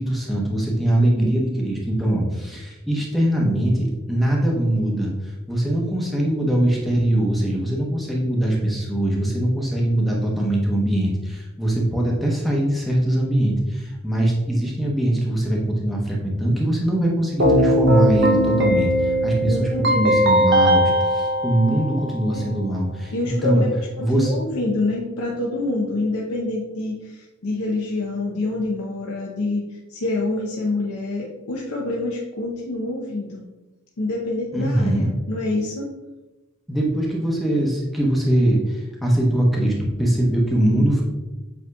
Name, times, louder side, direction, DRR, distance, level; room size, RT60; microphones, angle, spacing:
voice 1, 0.0-23.7 24.0-24.3 34.5-35.1 36.7-41.0, right 1 dB, ahead, -3 dB, 0.7 m, -22 dB
Keyboard (musical), 17.4-22.4, equal, 55° right, 0.6 m, -19 dB
voice 2, 19.4-20.2 22.3-22.6 23.1-23.7 24.0-33.4 34.0-35.9, left 2 dB, 85° left, -2 dB, 0.6 m, -26 dB
7.6 x 2.8 x 2.3 m, 1.1 s
head